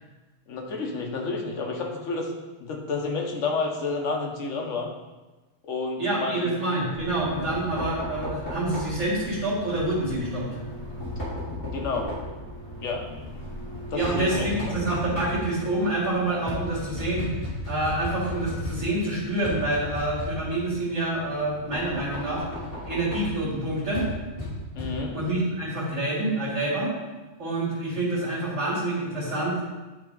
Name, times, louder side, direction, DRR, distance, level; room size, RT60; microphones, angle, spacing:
voice 1, 0.5-2.3 2.6-4.9 5.6-6.4 11.6-12.1 12.8-13.1 13.9-14.7 24.7-25.2, left 3 dB, 80° left, 1 dB, 1.3 m, -30 dB
voice 2, 6.0-10.5 13.9-17.3 17.6-22.4 22.8-24.1 25.1-26.9 27.4-29.7, right 1 dB, 70° right, -9 dB, 2.4 m, -27 dB
Knock, 6.9-25.3, left 1 dB, 50° left, 2.3 m, -36 dB
9.7 x 3.5 x 3.8 m, 1.2 s
omnidirectional pair, 1.3 m